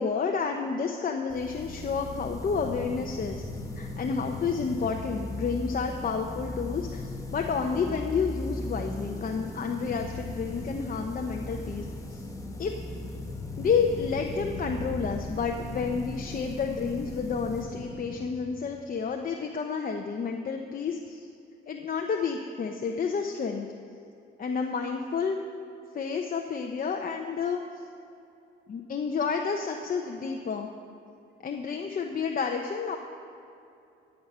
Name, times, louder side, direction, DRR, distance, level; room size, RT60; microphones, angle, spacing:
voice 1, 0.0-3.4 3.8-12.2 12.6-12.8 13.6-21.2 21.7-23.7 24.4-25.4 25.9-27.8 28.7-30.7 31.4-33.0, left 5 dB, 45° left, 3 dB, 0.9 m, -30 dB
sound 1, 1.3-18.8, left 1 dB, 15° left, 1.5 m, -38 dB
14.0 x 8.1 x 5.6 m, 2.7 s
cardioid pair, 90°, 20 cm